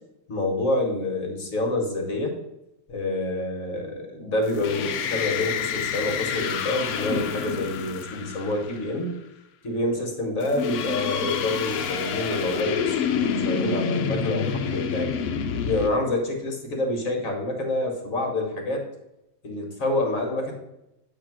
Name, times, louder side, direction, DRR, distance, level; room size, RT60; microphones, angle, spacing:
voice 1, 0.3-2.3 2.9-9.1 9.6-15.2 15.7-18.8 19.4-20.5, left 2 dB, 50° left, 2 dB, 1.6 m, -27 dB
sound 1, 4.5-8.9 10.4-15.9, left 6 dB, 80° left, 0.6 m, -28 dB
8.3 x 2.9 x 6.0 m, 0.89 s
omnidirectional pair, 1.9 m